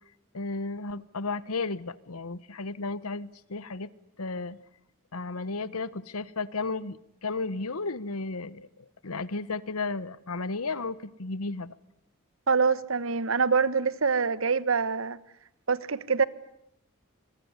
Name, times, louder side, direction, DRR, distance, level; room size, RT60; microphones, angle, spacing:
voice 1, 0.3-3.9 4.2-4.6 5.1-8.7 9.0-11.7, left 3 dB, 90° left, 1.1 m, -33 dB
voice 2, 12.5-15.2 15.7-16.2, right 5 dB, 65° right, 1.1 m, -25 dB
26.0 x 23.0 x 9.7 m
head